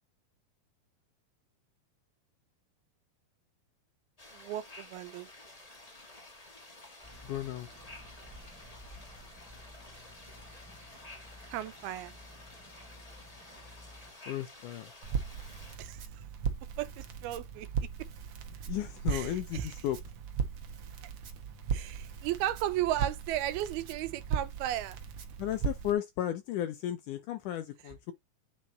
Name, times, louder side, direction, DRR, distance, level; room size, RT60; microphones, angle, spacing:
sound 1, 4.2-15.8, left 2 dB, 20° left, 0.9 m, -52 dB
voice 1, 4.3-5.3 11.5-12.1 15.8-16.0 16.8-17.7 19.1-19.7 21.7-25.0, right 13 dB, 90° right, 2.7 m, -35 dB
sound 2, 7.0-14.1, left 1 dB, 10° right, 1.1 m, -53 dB
voice 2, 7.2-7.7 14.3-14.9 18.7-20.0 25.4-28.1, left 12 dB, 80° left, 1.9 m, -34 dB
Crackle, 15.0-25.9, right 7 dB, 70° right, 1.3 m, -37 dB
7.7 x 4.4 x 4.0 m
omnidirectional pair, 4.4 m